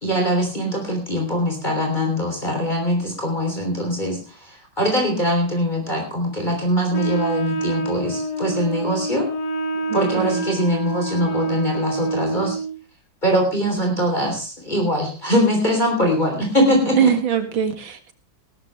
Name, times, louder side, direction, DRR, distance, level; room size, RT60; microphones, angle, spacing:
voice 1, 0.0-4.2 4.8-9.3 9.9-12.6 13.2-17.1, equal, 25° left, 1 dB, 3.6 m, -22 dB
Wind instrument woodwind instrument, 6.9-12.8, right 3 dB, 55° left, 2.0 m, -26 dB
voice 2, 9.9-10.4 17.0-18.1, right 8 dB, 85° right, 8 dB, 2.6 m, -22 dB
18.0 x 13.0 x 3.4 m, 0.32 s
omnidirectional pair, 2.1 m